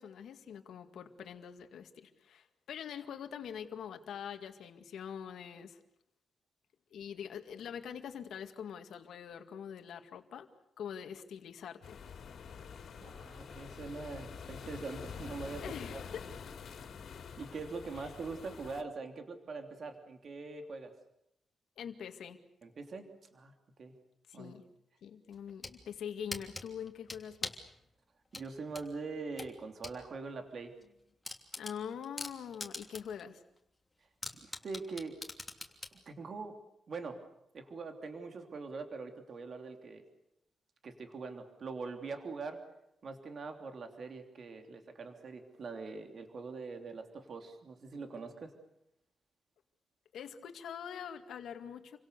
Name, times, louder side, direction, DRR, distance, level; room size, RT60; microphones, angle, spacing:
voice 1, 0.0-5.8 6.9-10.5 10.8-12.0 15.6-16.3 18.0-18.1 21.8-22.4 24.3-24.6 25.0-27.6 31.6-33.4 50.1-52.0, left 8 dB, 80° left, 6 dB, 2.1 m, -44 dB
sound 1, 11.8-18.8, left 6 dB, 60° left, 3.1 m, -47 dB
voice 2, 13.0-15.6 15.9-16.0 16.7-16.9 17.4-20.9 22.6-23.5 23.8-23.9 24.3-24.6 28.3-30.7 34.3-35.2 35.9-36.6 36.9-37.2 37.5-40.0 40.8-42.6 43.0-48.5, right 4 dB, 45° right, 5 dB, 3.1 m, -43 dB
sound 2, 25.3-25.8 26.3-27.7 28.3-30.0 30.4-30.5 30.8-30.9 31.2-33.2 33.6-33.7 34.2-36.0, left 2 dB, 10° left, 3.0 m, -42 dB
29.5 x 25.0 x 6.9 m, 0.81 s
wide cardioid pair, 165°, 0 cm